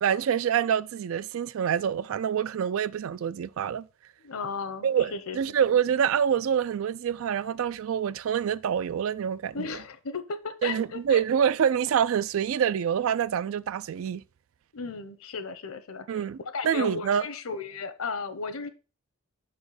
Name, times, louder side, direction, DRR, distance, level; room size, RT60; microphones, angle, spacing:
voice 1, 0.0-3.9 4.8-9.7 10.6-14.2 16.1-16.4 16.6-17.2, right 8 dB, 65° right, 0.3 m, -26 dB
voice 2, 4.2-5.4 9.5-11.2 14.7-16.2 16.5-18.7, left 4 dB, 70° left, 0.8 m, -35 dB
5.8 x 4.3 x 4.8 m
head